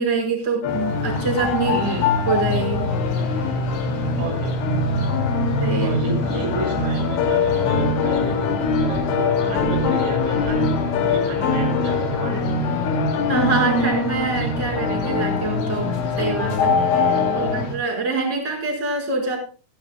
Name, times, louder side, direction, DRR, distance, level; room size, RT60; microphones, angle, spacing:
voice 1, 0.0-1.8 2.3-3.5 5.6-5.9 13.3-19.4, right 4 dB, 15° right, -1 dB, 5.0 m, -25 dB
sound 1, 0.6-17.6, left 4 dB, 70° left, 4.4 m, -23 dB
sound 2, 0.7-17.8, left 2 dB, 50° left, 3.6 m, -28 dB
voice 2, 1.6-2.1 4.2-4.6 5.8-8.5 8.8-12.5 17.2-17.6, right 1 dB, 75° right, 0 dB, 8.5 m, -32 dB
16.5 x 16.0 x 2.3 m, 0.36 s
omnidirectional pair, 5.9 m